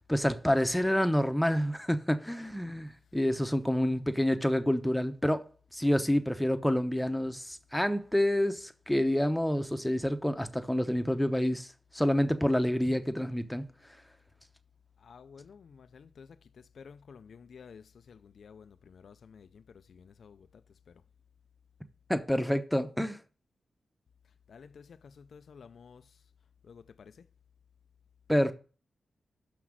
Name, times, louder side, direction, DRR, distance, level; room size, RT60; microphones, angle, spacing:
voice 1, 0.1-5.5 5.7-13.6 22.1-23.2 28.3-28.5, equal, 5° left, 0.8 m, -28 dB
voice 2, 15.1-16.3 16.8-19.5 19.9-20.4 24.5-24.8 25.2-26.0 26.7-27.1, left 6 dB, 70° left, 0.4 m, -52 dB
6.1 x 5.9 x 6.1 m
cardioid pair, 80°, 0 cm